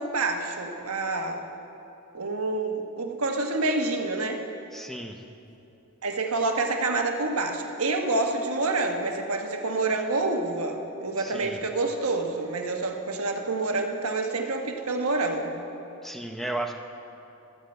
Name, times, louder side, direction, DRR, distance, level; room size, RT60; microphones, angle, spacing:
voice 1, 0.0-1.4 2.1-4.4 6.0-15.6, right 3 dB, 80° right, 3 dB, 1.3 m, -27 dB
voice 2, 4.7-5.2 11.2-11.6 16.0-16.8, right 1 dB, ahead, 4 dB, 0.7 m, -34 dB
16.5 x 13.0 x 4.3 m, 2.8 s
head